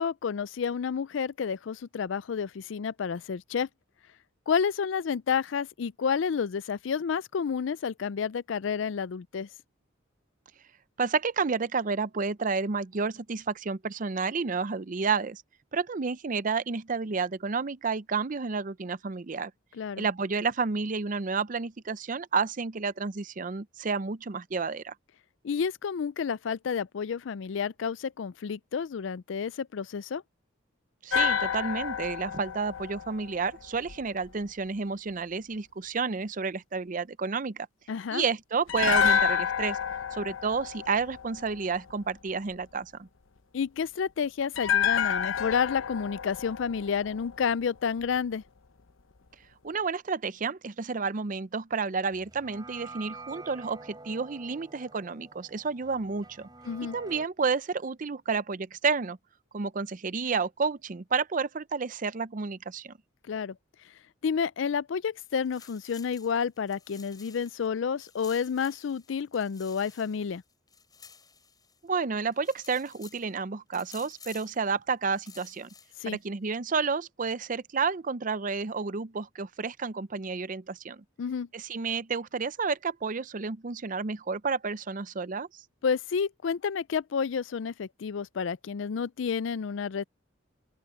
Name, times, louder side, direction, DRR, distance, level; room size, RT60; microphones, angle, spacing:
voice 1, 0.0-3.7 4.5-9.5 19.8-20.1 25.4-30.2 37.9-38.2 43.5-48.4 56.7-57.0 63.3-63.6 64.2-70.4 76.0-76.2 81.2-81.5 85.8-90.0, left 6 dB, 70° left, 0.4 m, -30 dB
voice 2, 11.0-15.4 15.7-19.5 20.0-24.9 31.0-37.7 38.1-39.8 40.1-43.1 49.6-56.5 56.9-59.2 59.5-62.9 71.8-75.7 76.1-81.0 81.5-85.6, right 5 dB, 40° right, 0.6 m, -30 dB
sound 1, 31.1-34.3 38.7-41.9 44.6-47.8 48.0-48.2, left 7 dB, 90° left, 0.9 m, -29 dB
sound 2, 52.1-57.3, right 3 dB, 20° right, 5.8 m, -47 dB
sound 3, 65.2-67.7 68.0-71.9 72.3-73.3 73.7-74.7 75.0-76.2, left 6 dB, 20° left, 7.8 m, -53 dB
open air
head